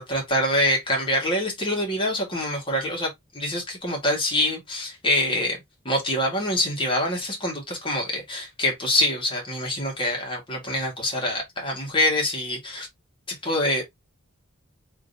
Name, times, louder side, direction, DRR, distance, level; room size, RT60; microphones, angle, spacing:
voice 1, 0.0-3.1 3.3-5.6 5.8-12.9 13.4-13.8, left 1 dB, 25° left, 1.5 m, -25 dB
3.5 x 2.9 x 2.6 m
head